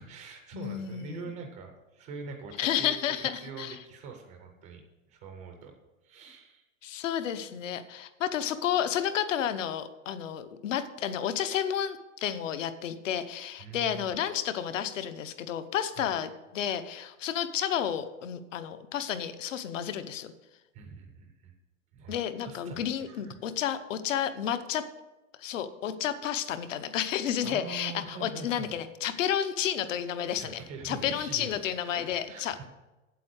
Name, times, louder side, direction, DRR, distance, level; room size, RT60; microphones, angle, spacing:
voice 1, 0.0-4.8 5.1-5.7 6.0-6.6 13.6-14.1 15.9-16.1 20.7-21.5 21.9-22.2 22.4-23.4 27.4-28.7 30.3-32.7, right 5 dB, 10° right, 3 dB, 0.4 m, -43 dB
voice 2, 0.5-1.3 2.6-3.8 6.8-20.3 22.1-24.8 25.4-32.7, left 9 dB, 70° left, 11 dB, 1.0 m, -31 dB
8.3 x 8.2 x 6.4 m, 1.1 s
supercardioid pair, 175°, 40 cm